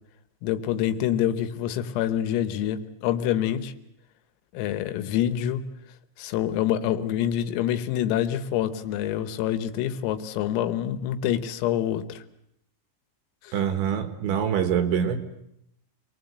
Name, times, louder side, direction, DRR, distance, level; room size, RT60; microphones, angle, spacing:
voice 1, 0.4-3.7 4.5-5.6 6.2-12.2 13.4-13.5, left 11 dB, 85° left, 11 dB, 3.8 m, -26 dB
voice 2, 13.5-15.2, right 8 dB, 70° right, 9 dB, 3.5 m, -25 dB
27.5 x 20.5 x 8.0 m, 0.76 s
omnidirectional pair, 6.0 m